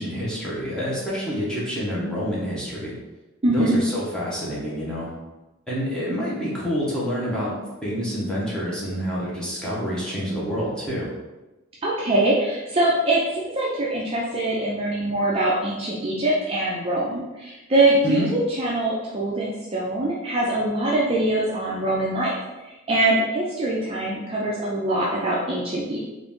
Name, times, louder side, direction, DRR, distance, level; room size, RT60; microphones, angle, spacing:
voice 1, 0.0-2.9 3.5-5.1 5.7-7.5 7.8-11.1 18.0-18.3, equal, 5° left, -7 dB, 1.0 m, -27 dB
voice 2, 3.4-3.8 11.8-22.4 22.6-26.0, right 1 dB, 25° right, -5 dB, 0.5 m, -23 dB
3.8 x 2.6 x 3.6 m, 1.1 s
head